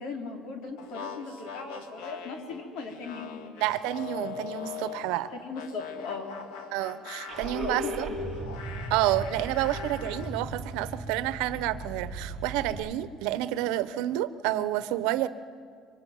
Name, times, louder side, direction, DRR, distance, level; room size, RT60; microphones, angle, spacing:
voice 1, 0.0-3.4 5.1-6.4 7.6-8.3, left 4 dB, 60° left, 4 dB, 4.0 m, -38 dB
sound 1, 0.8-5.1 5.5-10.4, left 5 dB, 90° left, 2.3 m, -40 dB
voice 2, 3.6-5.3 6.7-8.1 8.9-15.3, right 14 dB, 90° right, 14 dB, 1.0 m, -29 dB
Car / Engine starting, 7.3-12.7, right 2 dB, 5° right, 5.1 m, -39 dB
25.5 x 24.5 x 9.4 m, 2.2 s
cardioid pair, 160°, 0 cm